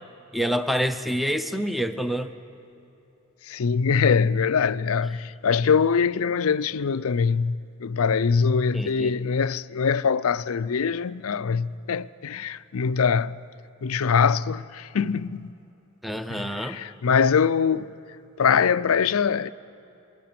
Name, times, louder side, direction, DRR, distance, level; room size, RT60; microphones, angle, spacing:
voice 1, 0.3-2.3 8.7-9.1 16.0-16.8, equal, ahead, 0.6 m, -27 dB
voice 2, 3.4-13.4 13.8-15.5 16.3-17.9 18.4-19.5, left 6 dB, 80° left, 0.5 m, -23 dB
27.0 x 21.0 x 5.9 m
head